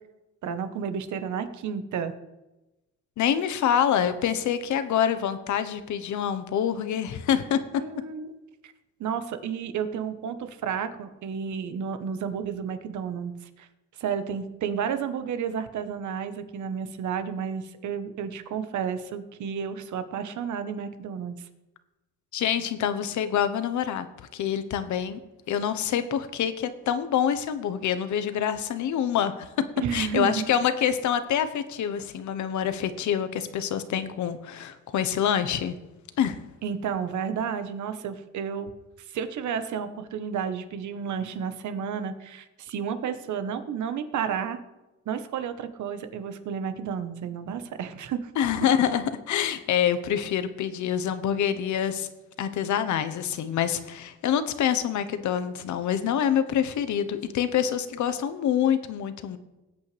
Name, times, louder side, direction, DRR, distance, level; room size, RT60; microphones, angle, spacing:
voice 1, 0.4-2.1 7.8-8.4 8.6-8.7 9.0-13.3 13.6-13.7 14.0-21.5 29.8-30.5 36.6-38.7 39.1-44.6 45.1-48.3, right 7 dB, 70° right, 9 dB, 1.2 m, -31 dB
voice 2, 3.2-7.6 22.3-24.1 24.3-25.2 25.5-29.5 29.9-35.8 36.2-36.4 48.4-52.1 52.4-59.4, left 9 dB, 75° left, 11 dB, 1.0 m, -26 dB
19.0 x 8.4 x 3.4 m, 1.0 s
cardioid pair, 90°, 30 cm